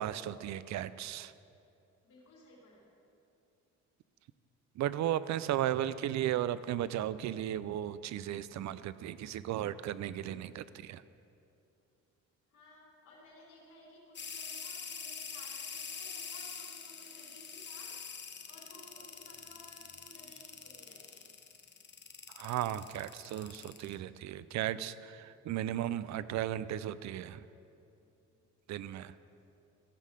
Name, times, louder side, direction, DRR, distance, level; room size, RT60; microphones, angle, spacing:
voice 1, 0.0-1.3 4.8-11.0 22.3-27.4 28.7-29.1, right 12 dB, 65° right, 16 dB, 0.5 m, -35 dB
voice 2, 2.0-2.9 12.5-18.0 18.4-22.5 28.0-28.5 28.8-29.1, left 1 dB, 80° left, -6 dB, 3.1 m, -58 dB
sound 1, 14.2-23.9, left 6 dB, 35° left, 0.9 m, -44 dB
14.5 x 5.6 x 6.4 m, 2.7 s
cardioid pair, 90°, 30 cm